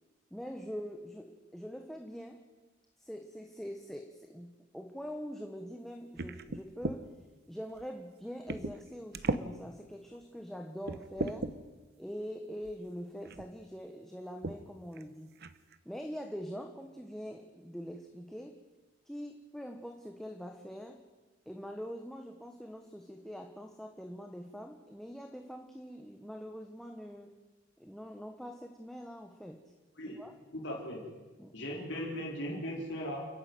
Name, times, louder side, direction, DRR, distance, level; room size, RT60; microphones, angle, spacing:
voice 1, 0.3-2.4 3.0-7.1 7.5-11.5 12.0-15.3 15.8-18.6 19.1-21.0 21.5-27.4 27.8-29.7 30.0-30.3 31.4-31.6, equal, ahead, 4 dB, 1.1 m, -44 dB
sound 1, 6.2-7.0 7.7-7.9 8.5-8.8 9.1-9.5 10.1-10.2 10.8-11.5 12.6-12.8 13.3-13.5 14.4-14.6 15.0-15.1 15.4-15.8, right 2 dB, 55° right, 0.9 m, -36 dB
voice 2, 30.5-31.0 31.5-33.3, equal, 65° left, -1 dB, 4.2 m, -38 dB
29.0 x 9.9 x 9.4 m, 1.2 s
head